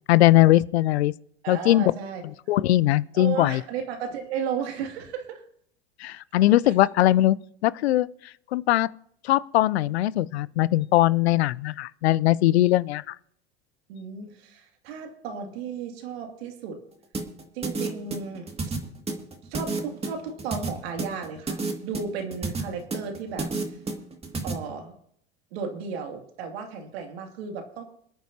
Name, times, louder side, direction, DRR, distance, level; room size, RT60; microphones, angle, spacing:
voice 1, 0.1-1.1 1.5-1.9 2.5-3.6 6.0-7.4 7.6-8.1 8.5-8.9 9.2-13.1, left 15 dB, 80° left, 0.5 m, -20 dB
voice 2, 1.4-2.2 3.1-5.4 6.7-6.8 13.9-16.8 17.5-18.5 19.5-23.5 24.4-24.9 25.5-27.8, right 6 dB, 70° right, 2.6 m, -34 dB
sound 1, 17.1-24.5, right 3 dB, 20° right, 2.2 m, -30 dB
27.0 x 9.3 x 2.8 m
hypercardioid pair, 80°, 32 cm